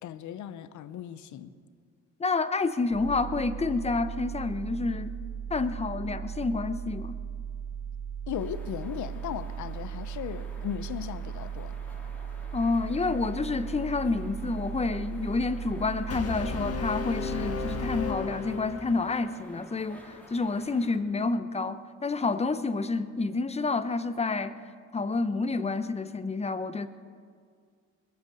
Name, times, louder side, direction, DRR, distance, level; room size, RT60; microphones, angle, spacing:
voice 1, 0.0-1.5 8.3-11.8, left 10 dB, 75° left, 0.8 m, -37 dB
voice 2, 2.2-5.1 5.5-7.1 12.5-24.6 24.9-26.9, left 3 dB, 20° left, 0.8 m, -29 dB
sound 1, 2.9-18.7, right 8 dB, 45° right, 2.2 m, -37 dB
sound 2, 8.3-21.0, left 1 dB, 5° left, 2.4 m, -51 dB
Brass instrument, 16.1-19.2, left 6 dB, 55° left, 1.4 m, -34 dB
21.0 x 7.8 x 7.0 m
cardioid pair, 90°, 30 cm